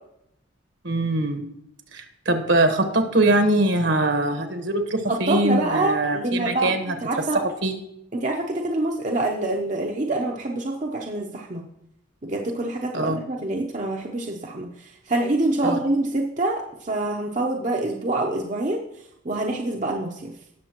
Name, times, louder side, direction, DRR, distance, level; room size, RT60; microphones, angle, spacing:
voice 1, 0.8-1.4 1.9-6.9 7.3-7.8 12.9-13.2 15.6-15.8, right 1 dB, 65° right, 6 dB, 1.3 m, -22 dB
voice 2, 5.1-6.7 7.0-7.4 8.1-11.6 12.2-18.8 19.2-20.3, right 2 dB, 35° right, 0 dB, 0.8 m, -26 dB
18.5 x 6.8 x 3.0 m, 0.78 s
head